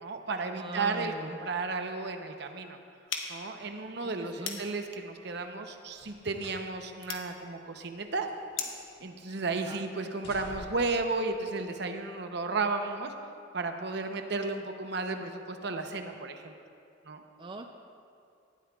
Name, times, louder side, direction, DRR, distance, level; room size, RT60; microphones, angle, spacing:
voice 1, 0.0-2.8 3.3-8.3 9.0-13.1 13.5-16.5 17.1-17.2, right 3 dB, 60° right, 6 dB, 0.8 m, -33 dB
voice 2, 0.5-1.4 4.0-4.6 9.6-9.8 17.4-17.7, right 2 dB, 25° right, 4 dB, 0.4 m, -41 dB
sound 1, 3.1-8.9, left 6 dB, 80° left, 1.2 m, -42 dB
sound 2, 5.9-6.7 7.1-7.2 7.9-9.0 9.3-9.6 10.0-11.0 11.9-12.0, left 1 dB, 55° left, 1.9 m, -50 dB
18.0 x 12.0 x 2.4 m, 2.5 s
head